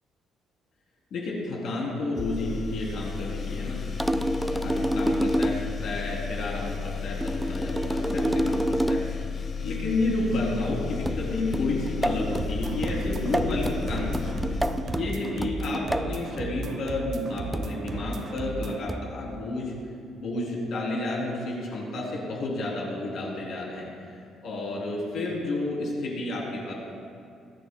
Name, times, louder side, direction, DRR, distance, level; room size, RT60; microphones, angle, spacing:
voice 1, 1.1-3.8 4.3-9.1 9.6-14.4 14.8-19.7 20.1-23.9 24.4-26.7, left 2 dB, 55° left, -3 dB, 3.2 m, -31 dB
sound 1, 2.2-15.5, left 6 dB, 30° left, 0.7 m, -34 dB
sound 2, 4.0-5.8 7.2-9.2 11.1-16.2 17.5-17.9 18.9-19.2, right 1 dB, 5° right, 0.3 m, -28 dB
sound 3, 12.3-18.8, right 3 dB, 45° right, 0.7 m, -35 dB
24.0 x 8.9 x 2.2 m, 2.5 s
cardioid pair, 160°, 0 cm